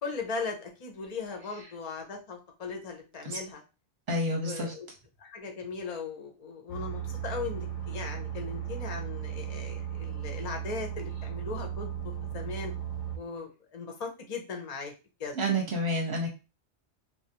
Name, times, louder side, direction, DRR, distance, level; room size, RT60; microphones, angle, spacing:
voice 1, 0.0-3.6 4.4-4.9 5.2-12.7 13.2-14.9 15.2-15.4, left 4 dB, 40° left, 3 dB, 0.6 m, -38 dB
voice 2, 4.1-4.7 15.3-16.3, right 1 dB, 20° right, 0 dB, 0.8 m, -29 dB
sound 1, 6.7-13.2, right 9 dB, 85° left, 1.0 m, -36 dB
3.3 x 2.3 x 2.8 m, 0.31 s
omnidirectional pair, 1.2 m